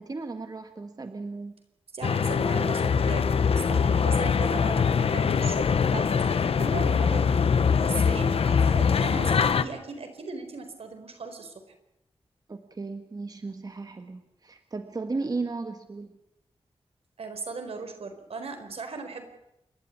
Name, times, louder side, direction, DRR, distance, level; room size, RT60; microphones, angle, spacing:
voice 1, 0.0-1.5 12.5-16.1, right 3 dB, 40° right, 7 dB, 1.6 m, -35 dB
voice 2, 1.9-7.5 7.8-11.5 17.2-19.2, right 4 dB, 80° right, 7 dB, 4.3 m, -38 dB
sound 1, 2.0-9.6, left 6 dB, 75° left, 1.0 m, -23 dB
28.5 x 12.5 x 9.9 m, 0.84 s
wide cardioid pair, 95°, 10 cm